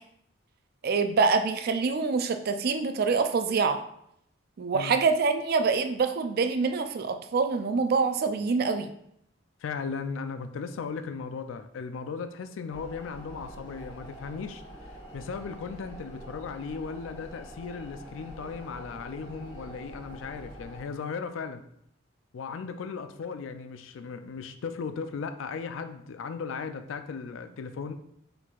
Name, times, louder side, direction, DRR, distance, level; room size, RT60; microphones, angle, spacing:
voice 1, 0.8-3.8 4.6-8.9, right 4 dB, 50° right, 8 dB, 0.4 m, -25 dB
voice 2, 9.6-14.6 15.1-21.6 22.3-27.9, left 5 dB, 75° left, 9 dB, 0.4 m, -36 dB
sound 1, 12.7-20.8, right 1 dB, 25° left, 1.3 m, -45 dB
4.5 x 3.9 x 2.4 m, 0.72 s
head